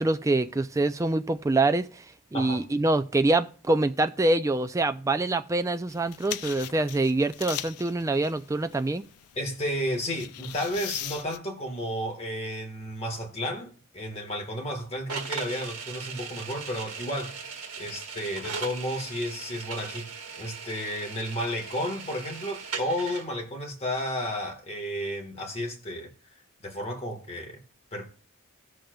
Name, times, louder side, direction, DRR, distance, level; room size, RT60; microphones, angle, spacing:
voice 1, 0.0-2.0 2.3-9.0, right 2 dB, 15° right, 0.3 m, -25 dB
sound 1, 5.9-11.4, left 13 dB, 85° left, 0.4 m, -40 dB
voice 2, 9.3-17.4 17.8-20.1 20.4-26.1 26.6-27.6 27.9-28.1, equal, 30° left, 1.5 m, -32 dB
sound 2, 15.1-23.2, right 5 dB, 80° right, 1.6 m, -38 dB
17.5 x 6.4 x 2.3 m
head